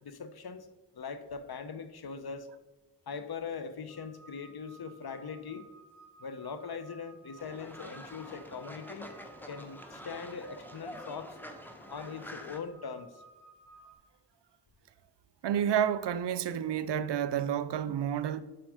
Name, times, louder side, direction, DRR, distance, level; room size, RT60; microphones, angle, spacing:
voice 1, 0.0-0.7 0.9-2.5 3.1-5.7 6.2-9.1 9.5-11.4 11.9-13.2, left 5 dB, 65° left, 0.8 m, -41 dB
sound 1, 3.9-14.0, right 3 dB, 50° left, 1.6 m, -57 dB
Fowl, 7.4-12.6, equal, 5° left, 0.9 m, -47 dB
voice 2, 15.4-18.4, right 9 dB, 80° right, 0.5 m, -30 dB
6.1 x 4.8 x 4.9 m
cardioid pair, 40°, 41 cm